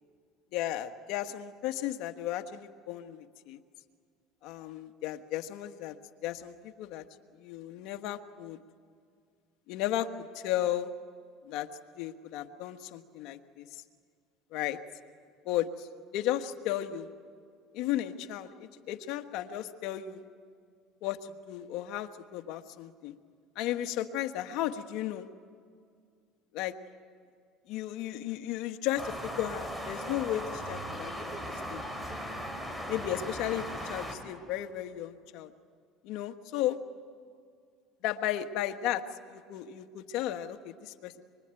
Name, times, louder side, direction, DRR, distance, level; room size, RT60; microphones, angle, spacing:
voice 1, 0.5-3.6 4.4-6.0 6.2-7.0 7.4-8.6 9.7-10.9 11.4-11.7 12.0-13.8 14.5-14.8 15.4-17.1 17.7-20.2 21.0-23.1 23.5-25.3 26.5-26.8 27.7-31.8 32.9-35.5 36.0-36.8 38.0-41.2, left 12 dB, 70° left, 7 dB, 1.5 m, -34 dB
sound 1, 29.0-34.1, equal, 10° right, 4.7 m, -38 dB
25.5 x 24.5 x 9.1 m, 2.2 s
supercardioid pair, 115°, 0 cm